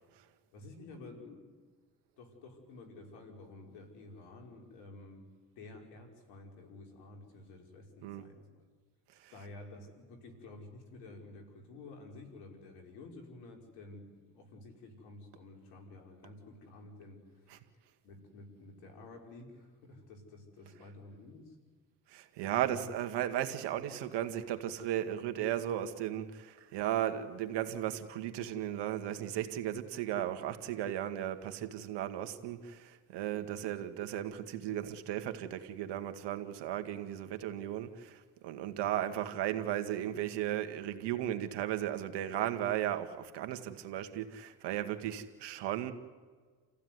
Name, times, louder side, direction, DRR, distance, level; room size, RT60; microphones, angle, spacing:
voice 1, 0.5-1.5 2.2-5.3 5.6-8.5 9.3-17.5 18.0-21.6 22.7-22.8 33.5-33.7, left 2 dB, 90° left, 5.6 m, -51 dB
voice 2, 22.1-45.9, right 11 dB, 80° right, 2.1 m, -35 dB
29.0 x 15.5 x 9.6 m
supercardioid pair, 75°, 41 cm